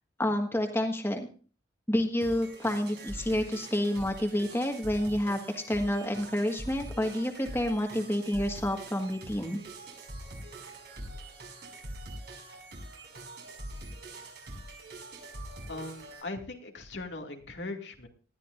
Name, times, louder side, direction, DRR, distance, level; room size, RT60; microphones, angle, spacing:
voice 1, 0.2-1.3 1.9-9.6, left 1 dB, 15° left, 3 dB, 1.6 m, -29 dB
sound 1, 2.2-16.2, right 1 dB, 70° right, 5.4 m, -44 dB
voice 2, 15.7-18.1, left 2 dB, 80° left, 2 dB, 2.3 m, -39 dB
19.5 x 13.0 x 2.6 m, 0.39 s
head